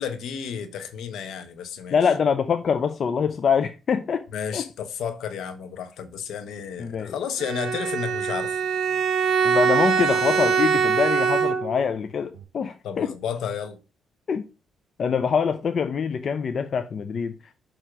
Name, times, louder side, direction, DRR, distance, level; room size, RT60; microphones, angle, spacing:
voice 1, 0.0-2.1 4.3-8.5 12.8-13.8, left 7 dB, 75° left, 1.0 m, -32 dB
voice 2, 1.9-4.3 4.5-4.6 6.8-7.1 9.4-13.1 14.3-14.4 15.0-17.4, left 6 dB, 50° left, 0.5 m, -24 dB
Bowed string instrument, 7.4-11.9, right 6 dB, 80° right, 0.8 m, -23 dB
6.9 x 3.0 x 5.9 m
cardioid pair, 90°, 0 cm